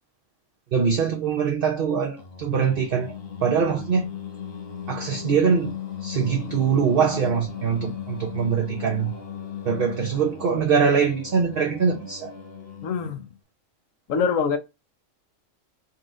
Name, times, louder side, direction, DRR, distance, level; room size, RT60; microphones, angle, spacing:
voice 1, 0.7-3.1 3.4-4.1 4.9-5.7 6.0-9.1 9.6-12.3, right 6 dB, 55° right, 0.7 m, -23 dB
Singing, 2.2-13.3, left 8 dB, 55° left, 0.9 m, -37 dB
voice 2, 12.8-13.3 14.1-14.6, left 6 dB, 85° left, 1.1 m, -24 dB
4.0 x 2.6 x 3.6 m
omnidirectional pair, 1.3 m